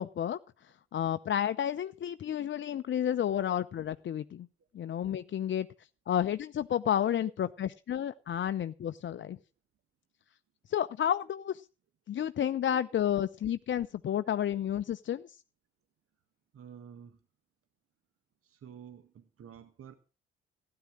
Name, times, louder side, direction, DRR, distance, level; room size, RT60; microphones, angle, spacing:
voice 1, 0.0-4.5 4.7-5.7 6.1-9.4 10.7-11.7 12.1-15.4, left 10 dB, 40° left, 12 dB, 0.7 m, -31 dB
voice 2, 16.5-17.2 18.4-19.9, right 8 dB, 45° right, 10 dB, 1.6 m, -50 dB
16.0 x 9.7 x 6.3 m, 0.34 s
figure-of-eight pair, 45°, 30 cm